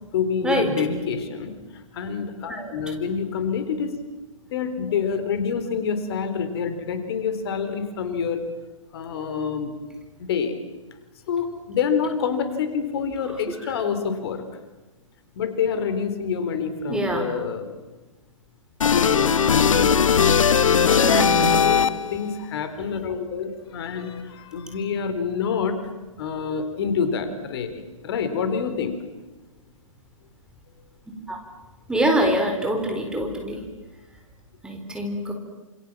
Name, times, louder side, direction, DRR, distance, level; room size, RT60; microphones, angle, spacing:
voice 1, 0.1-4.0 4.5-8.4 8.9-9.8 10.2-10.6 11.3-14.6 15.4-17.7 18.9-20.0 20.7-25.8 26.2-29.0, left 6 dB, 45° left, 9 dB, 3.8 m, -27 dB
voice 2, 13.3-13.7 16.9-17.3 21.0-21.6 31.3-31.4 31.9-33.6 34.6-35.3, right 1 dB, 5° right, 3 dB, 4.0 m, -25 dB
sound 1, 18.8-22.2, left 7 dB, 70° left, 1.1 m, -18 dB
28.0 x 28.0 x 7.5 m, 1.2 s
figure-of-eight pair, 125°, 17 cm